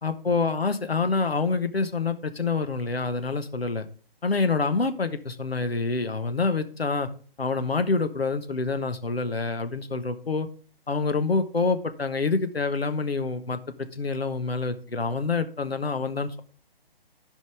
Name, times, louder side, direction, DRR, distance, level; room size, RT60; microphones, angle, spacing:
voice 1, 0.0-3.8 4.2-7.1 7.4-10.5 10.9-13.6 13.9-16.4, left 4 dB, 80° left, 8 dB, 1.2 m, -27 dB
14.5 x 5.3 x 3.4 m, 0.42 s
figure-of-eight pair, 140°, 30 cm